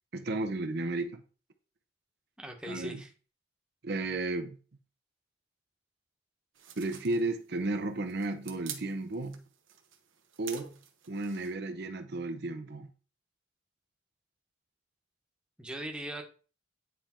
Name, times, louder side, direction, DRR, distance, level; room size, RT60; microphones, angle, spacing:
voice 1, 0.1-1.2 2.7-3.0 3.8-4.6 6.8-9.5 10.4-12.9, right 2 dB, 55° right, 0.7 m, -34 dB
voice 2, 2.4-3.1 15.6-16.2, right 1 dB, 5° right, 1.0 m, -39 dB
sound 1, 6.5-11.5, right 9 dB, 85° right, 1.2 m, -48 dB
9.4 x 3.4 x 4.3 m
head